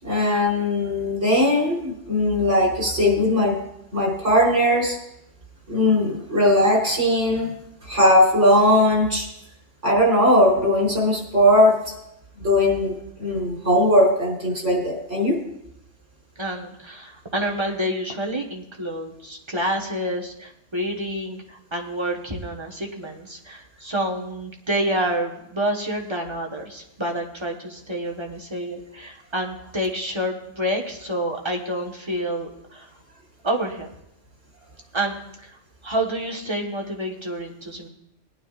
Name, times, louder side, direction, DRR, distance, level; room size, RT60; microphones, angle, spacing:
voice 1, 0.0-3.6 3.9-5.0 5.7-7.6 7.9-9.3 9.8-11.8 12.4-15.4, left 1 dB, 80° right, -3 dB, 3.9 m, -19 dB
voice 2, 16.4-32.9 33.4-33.9 34.9-35.5 35.8-37.9, right 1 dB, 25° right, 0 dB, 1.3 m, -28 dB
19.5 x 9.4 x 2.4 m, 0.81 s
omnidirectional pair, 1.2 m